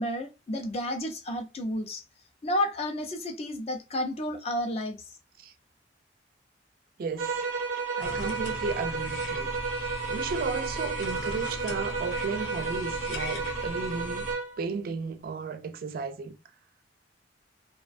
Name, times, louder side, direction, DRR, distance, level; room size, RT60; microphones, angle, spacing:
voice 1, 0.0-2.0 2.4-5.1, left 1 dB, 35° left, 0.4 m, -31 dB
voice 2, 7.0-7.4 8.0-9.5 10.1-14.3 14.6-16.4, right 4 dB, 50° right, 0.3 m, -34 dB
sound 1, 7.2-14.6, right 4 dB, 90° right, 0.7 m, -32 dB
sound 2, 8.0-14.3, left 2 dB, 85° left, 0.6 m, -38 dB
2.4 x 2.1 x 2.4 m
head